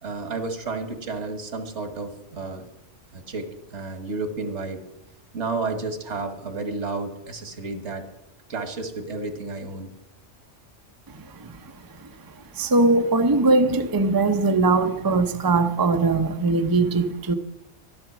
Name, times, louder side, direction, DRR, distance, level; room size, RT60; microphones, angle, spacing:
voice 1, 0.0-2.6 3.1-4.8 5.3-8.0 8.5-9.9, right 3 dB, 70° right, 1.8 m, -31 dB
voice 2, 11.1-11.7 12.0-12.1 12.5-17.3, right 3 dB, 25° right, 0.6 m, -21 dB
12.5 x 11.5 x 6.1 m
omnidirectional pair, 1.2 m